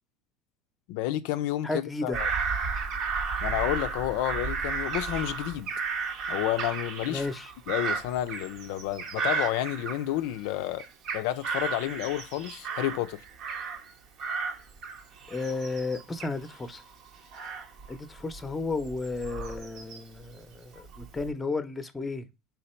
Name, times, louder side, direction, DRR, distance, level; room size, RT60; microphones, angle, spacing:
voice 1, 0.9-2.3 3.4-5.7 6.3-7.3 7.7-10.8 11.1-13.2, left 14 dB, 70° left, 0.3 m, -30 dB
voice 2, 1.6-2.2 7.1-7.5 15.3-16.8 17.9-22.3, left 3 dB, 15° left, 0.7 m, -33 dB
Bird vocalization bird call bird song / Crow, 2.1-10.5 10.8-13.9 14.2-20.2 20.7-21.3, right 5 dB, 55° right, 0.8 m, -34 dB
3.7 x 2.8 x 4.3 m
supercardioid pair, 95°, 0 cm